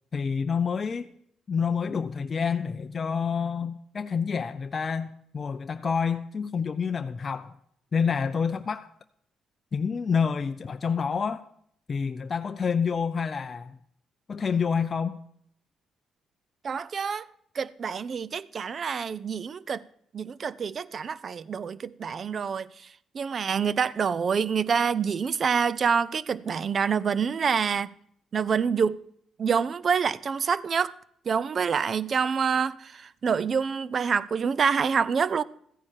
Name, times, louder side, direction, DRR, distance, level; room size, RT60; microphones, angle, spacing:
voice 1, 0.1-1.1 1.5-7.6 7.9-8.9 9.7-11.4 11.9-13.8 14.3-15.2, left 6 dB, 40° left, 0.4 m, -28 dB
voice 2, 16.6-17.3 17.5-19.8 20.1-22.9 23.1-27.9 28.3-29.0 29.4-30.9 31.3-35.4, right 6 dB, 45° right, 0.4 m, -27 dB
14.0 x 9.7 x 4.4 m
cardioid pair, 90°, 0 cm